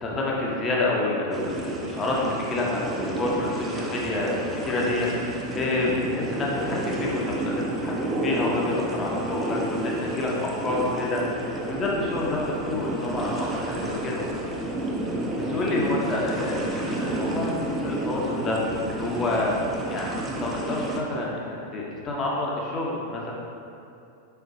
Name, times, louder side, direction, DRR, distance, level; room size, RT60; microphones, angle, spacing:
voice 1, 0.0-7.5 7.8-14.2 15.0-18.6 19.0-19.5 19.9-23.3, left 2 dB, 25° left, -4 dB, 0.7 m, -28 dB
sound 1, 1.3-21.0, right 1 dB, 20° right, 0.5 m, -31 dB
4.4 x 4.3 x 2.6 m, 2.6 s
figure-of-eight pair, 90°, 0 cm